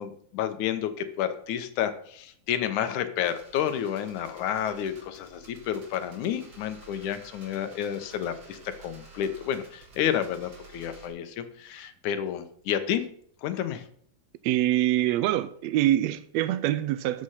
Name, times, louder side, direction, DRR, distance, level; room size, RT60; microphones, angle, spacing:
voice 1, 0.0-13.0 13.4-13.9, left 9 dB, 75° left, 2.5 m, -30 dB
sound 1, 3.2-11.1, right 4 dB, 50° right, 4.0 m, -51 dB
voice 2, 14.4-17.2, right 13 dB, 80° right, 1.6 m, -25 dB
13.0 x 7.9 x 5.7 m
omnidirectional pair, 3.6 m